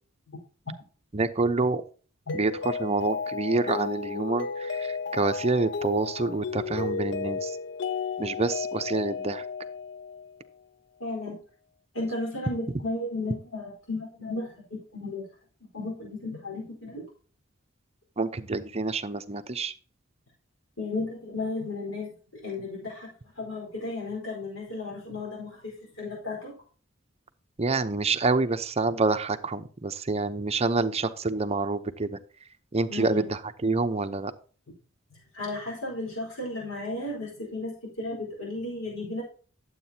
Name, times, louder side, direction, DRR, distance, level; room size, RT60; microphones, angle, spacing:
voice 1, 1.1-1.8 2.3-7.5 8.2-9.4 18.2-19.7 27.6-32.2 32.7-34.3, right 3 dB, 30° right, 9 dB, 0.7 m, -27 dB
Mallet percussion, 2.3-10.4, left 5 dB, 60° left, 0.6 m, -33 dB
voice 2, 11.0-11.4 11.9-15.2 15.7-17.0 20.8-23.1 23.4-26.5 32.9-33.3 35.3-39.2, left 2 dB, 85° left, -1 dB, 4.4 m, -34 dB
11.5 x 8.0 x 2.8 m, 0.40 s
head